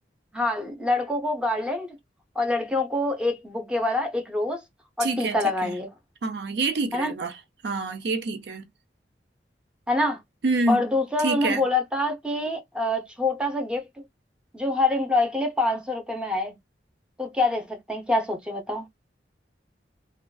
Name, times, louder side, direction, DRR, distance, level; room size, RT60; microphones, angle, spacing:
voice 1, 0.3-1.9 2.4-4.6 5.0-5.9 6.9-7.1 9.9-10.2 10.7-13.9 14.5-16.5 17.2-18.9, left 2 dB, 5° right, 0.6 m, -25 dB
voice 2, 5.0-5.8 6.2-7.4 7.6-8.7 10.4-10.8 11.2-11.6, right 3 dB, 65° right, 0.5 m, -27 dB
2.5 x 2.3 x 2.2 m
head